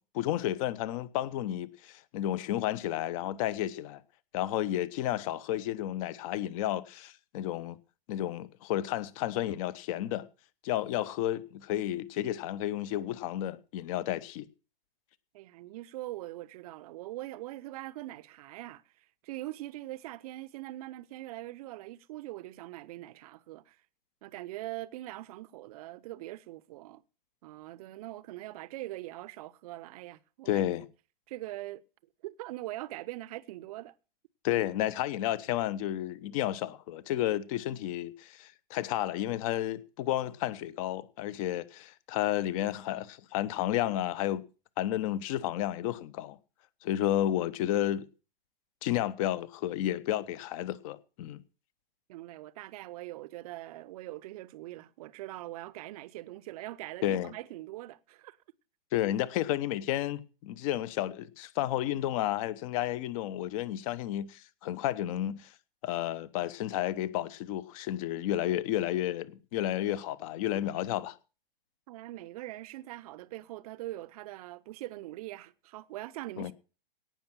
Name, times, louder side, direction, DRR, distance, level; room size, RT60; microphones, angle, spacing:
voice 1, 0.1-4.0 4.3-7.8 8.1-10.3 10.6-14.5 30.5-30.9 34.4-44.4 44.8-46.4 46.8-48.1 48.8-51.4 57.0-57.3 58.9-65.5 65.8-71.2 76.4-76.5, left 13 dB, 35° left, 0.9 m, -32 dB
voice 2, 15.3-23.8 24.2-27.0 27.4-30.6 31.3-31.8 32.2-33.9 52.1-58.4 71.9-76.5, right 16 dB, 40° right, 0.7 m, -42 dB
17.5 x 6.2 x 6.1 m
figure-of-eight pair, 120°, 29 cm